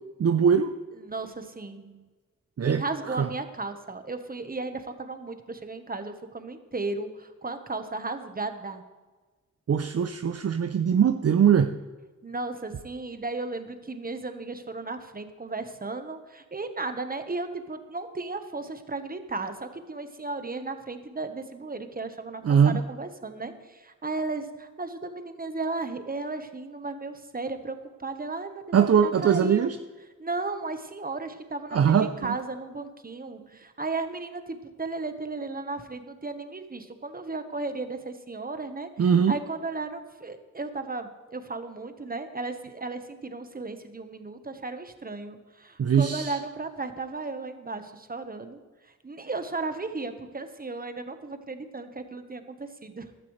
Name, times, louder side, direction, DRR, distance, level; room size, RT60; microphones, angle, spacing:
voice 1, 0.2-0.7 2.6-2.8 3.2-3.3 9.7-11.7 22.4-22.8 28.7-29.8 31.7-32.4 39.0-39.4 45.8-46.4, right 7 dB, 50° right, 9 dB, 0.6 m, -21 dB
voice 2, 1.0-1.9 2.6-8.8 12.2-27.8 28.0-28.7 29.0-29.7 30.2-38.9 39.3-48.6 49.0-53.1, right 3 dB, 30° right, 8 dB, 1.2 m, -35 dB
15.0 x 12.5 x 3.3 m, 1.3 s
wide cardioid pair, 90°, 31 cm